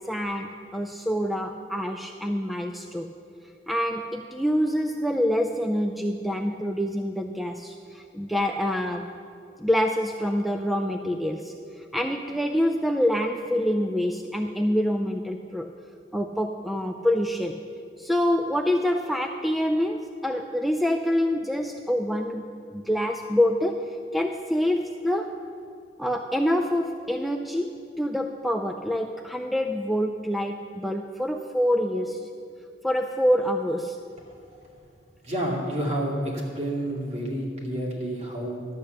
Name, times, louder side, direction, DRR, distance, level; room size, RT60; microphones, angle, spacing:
voice 1, 0.1-3.1 3.7-9.1 9.6-15.7 16.1-17.6 18.0-22.5 22.7-25.4 26.0-27.7 28.0-32.2 32.8-34.0, equal, ahead, 4 dB, 0.3 m, -26 dB
voice 2, 35.2-38.7, right 1 dB, 40° right, -3 dB, 2.4 m, -29 dB
12.0 x 8.5 x 6.6 m, 2.5 s
head